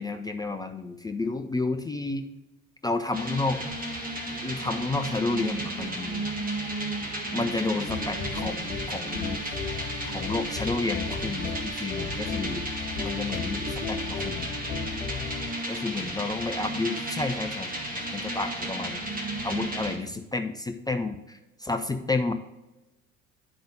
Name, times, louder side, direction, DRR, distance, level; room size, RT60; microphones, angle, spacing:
voice 1, 0.0-2.3 2.8-3.6 4.4-6.3 7.3-9.4 10.0-12.6 13.0-14.5 15.7-19.0 19.4-22.3, left 3 dB, 10° left, 6 dB, 0.4 m, -31 dB
sound 1, 3.1-20.0, right 1 dB, 20° right, 1.9 m, -33 dB
sound 2, 7.9-15.5, left 5 dB, 75° left, 1.0 m, -35 dB
11.0 x 3.9 x 5.0 m, 0.99 s
figure-of-eight pair, 60°, 43 cm